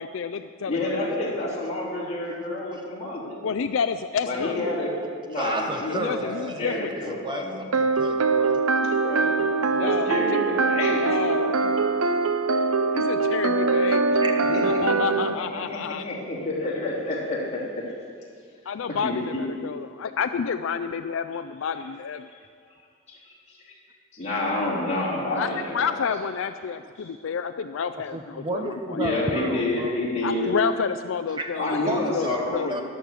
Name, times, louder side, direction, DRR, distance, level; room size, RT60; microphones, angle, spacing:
voice 1, 0.0-1.0 3.4-4.6 5.9-6.9 9.7-10.4 10.9-11.7 12.9-14.0 14.6-16.0 18.7-22.3 25.4-25.5 25.7-29.0 30.2-31.8 32.1-32.8, left 6 dB, 65° left, 10 dB, 0.4 m, -29 dB
voice 2, 0.7-3.4 4.2-4.9 5.3-6.3 6.6-7.6 8.7-9.5 9.8-11.6 14.5-17.8 19.0-19.4 23.1-23.7 24.1-26.0 27.0-27.1 28.9-30.5 31.6-32.8, left 2 dB, 30° left, -6 dB, 3.5 m, -29 dB
voice 3, 5.3-7.4 7.7-8.6 14.0-14.4 28.1-30.0 31.3-32.4 32.7-32.8, right 2 dB, 20° right, 6 dB, 0.5 m, -33 dB
sound 1, 7.7-15.3, right 4 dB, 85° right, 0.6 m, -23 dB
13.5 x 11.5 x 6.3 m, 2.1 s
head